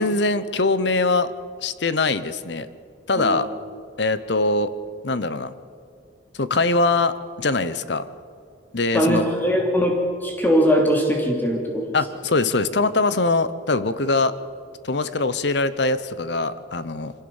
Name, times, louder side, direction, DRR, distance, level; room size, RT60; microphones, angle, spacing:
voice 1, 0.0-1.3 1.6-2.7 3.1-3.5 4.0-4.7 5.0-5.5 6.3-8.1 8.7-9.3 11.9-14.3 14.8-17.1, left 3 dB, 60° left, 14 dB, 0.9 m, -22 dB
voice 2, 8.9-11.9, equal, 10° left, 0 dB, 3.2 m, -21 dB
25.0 x 16.0 x 7.2 m, 2.3 s
head